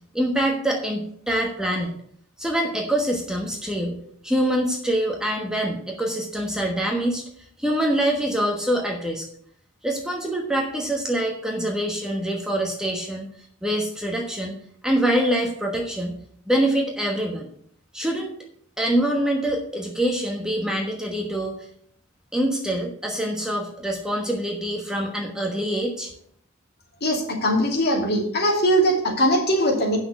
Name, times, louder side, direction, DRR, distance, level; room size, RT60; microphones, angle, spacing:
voice 1, 0.1-2.0 2.4-4.0 4.2-7.2 7.6-9.2 9.8-13.3 13.6-14.6 14.8-16.2 16.5-17.5 17.9-18.3 18.8-21.7 22.3-26.1, right 1 dB, 5° right, 0 dB, 1.2 m, -25 dB
voice 2, 27.0-30.0, equal, 50° left, -1 dB, 2.7 m, -21 dB
8.7 x 6.1 x 6.4 m, 0.64 s
head